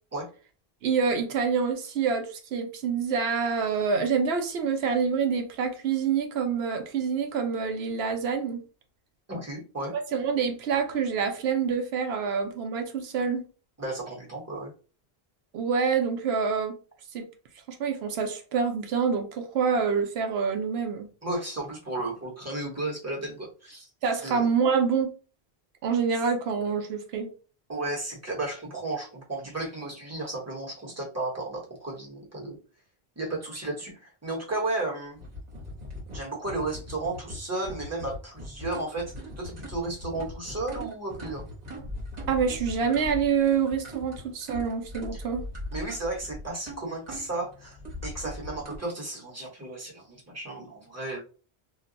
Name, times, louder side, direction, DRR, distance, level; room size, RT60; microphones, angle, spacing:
voice 1, 0.8-8.6 9.9-13.4 15.5-16.8 17.1-17.3 17.7-21.1 24.0-25.1 25.8-27.3 42.3-45.4, right 6 dB, 80° right, 0.8 m, -26 dB
voice 2, 9.3-10.0 13.8-14.7 21.2-23.9 24.2-24.5 27.7-32.6 33.2-35.2 36.1-41.4 45.1-45.2 45.7-47.8 48.0-51.2, right 2 dB, 15° right, 1.0 m, -34 dB
sound 1, 35.2-48.8, left 1 dB, 45° right, 1.1 m, -40 dB
2.3 x 2.2 x 3.8 m
omnidirectional pair, 1.1 m